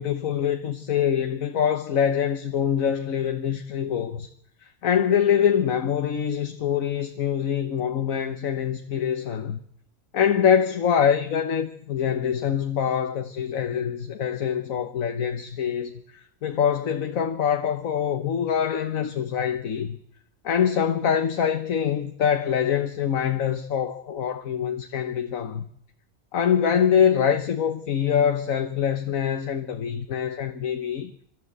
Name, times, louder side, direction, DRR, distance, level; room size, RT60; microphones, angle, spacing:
voice 1, 0.0-4.3 4.6-9.6 10.1-20.0 20.4-25.6 26.3-31.1, left 8 dB, 75° left, 1.5 m, -24 dB
29.0 x 13.0 x 8.0 m
omnidirectional pair, 1.4 m